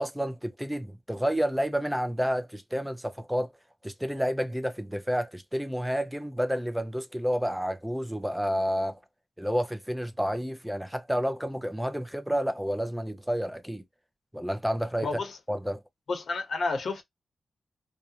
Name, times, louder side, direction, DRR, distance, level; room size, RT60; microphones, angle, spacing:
voice 1, 0.0-3.5 3.8-9.0 9.4-13.8 14.3-15.1 15.5-15.8, equal, ahead, 0.3 m, -30 dB
voice 2, 15.0-15.4 16.1-17.0, left 3 dB, 70° left, 0.8 m, -30 dB
2.4 x 2.1 x 2.7 m
wide cardioid pair, 180°, 0 cm